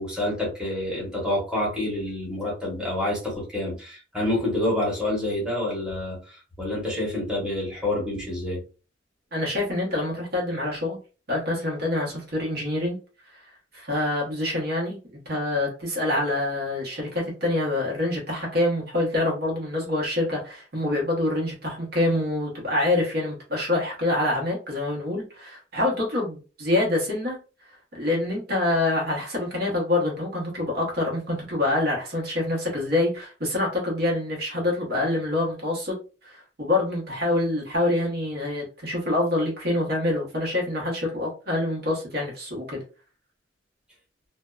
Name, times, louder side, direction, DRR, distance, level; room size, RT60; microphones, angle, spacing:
voice 1, 0.0-8.6, left 1 dB, 5° right, -5 dB, 1.0 m, -28 dB
voice 2, 9.3-11.0 11.3-13.0 13.3-13.4 13.7-15.0 15.3-27.4 27.9-35.9 36.2-42.8, left 2 dB, 55° right, -1 dB, 0.9 m, -26 dB
2.6 x 2.1 x 2.3 m, 0.35 s
head